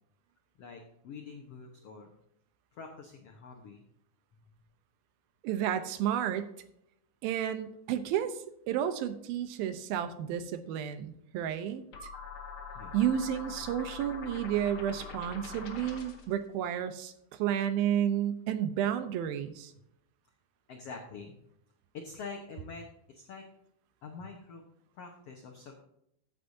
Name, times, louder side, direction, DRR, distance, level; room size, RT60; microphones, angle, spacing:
voice 1, 0.6-2.1 2.7-3.8 12.7-12.9 20.7-21.3 21.9-23.5 24.0-24.6 24.9-25.8, left 4 dB, 80° left, 1 dB, 1.3 m, -45 dB
voice 2, 5.4-6.5 7.2-11.8 12.9-19.7, right 10 dB, 75° right, 10 dB, 2.5 m, -31 dB
sound 1, 11.9-16.3, left 5 dB, 55° left, 2.7 m, -44 dB
15.5 x 8.2 x 2.7 m, 0.77 s
omnidirectional pair, 4.6 m